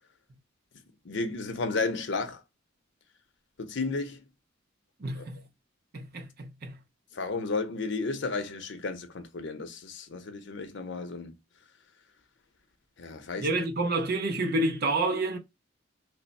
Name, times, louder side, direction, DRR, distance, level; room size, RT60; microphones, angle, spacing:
voice 1, 1.0-2.4 3.6-4.2 5.1-5.4 7.1-11.3 13.0-13.6, left 3 dB, 60° left, 0.7 m, -33 dB
voice 2, 5.0-5.4 5.9-6.8 13.4-15.4, right 2 dB, 55° right, 0.7 m, -29 dB
3.3 x 2.0 x 4.0 m
head